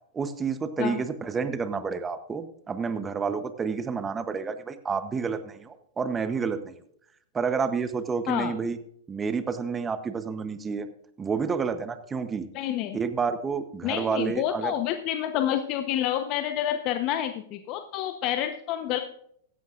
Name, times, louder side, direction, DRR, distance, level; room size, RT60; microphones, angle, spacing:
voice 1, 0.1-6.7 7.3-8.8 9.1-10.9 11.2-12.5 12.9-14.7, right 5 dB, 15° right, 10 dB, 0.8 m, -29 dB
voice 2, 12.5-13.0 13.8-19.0, left 11 dB, 40° left, 7 dB, 0.9 m, -28 dB
15.5 x 11.5 x 2.5 m, 0.67 s
hypercardioid pair, 135°, 0 cm